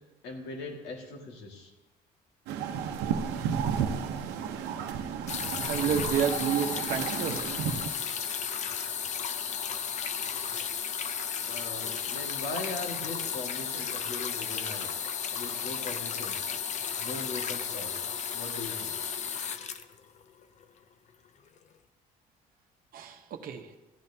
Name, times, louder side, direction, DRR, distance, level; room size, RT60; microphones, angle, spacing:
voice 1, 0.2-1.7 11.4-14.9 15.3-16.5 17.0-19.0, left 2 dB, 90° left, 1 dB, 2.0 m, -40 dB
sound 1, 2.5-7.9, right 7 dB, 90° right, 0.8 m, -32 dB
sound 2, 5.3-20.6 21.6-21.7, left 7 dB, 45° left, 0.6 m, -34 dB
voice 2, 5.7-7.4 22.9-23.7, right 7 dB, 60° right, 5 dB, 0.9 m, -30 dB
14.5 x 10.5 x 2.8 m, 1.1 s
cardioid pair, 110°, 17 cm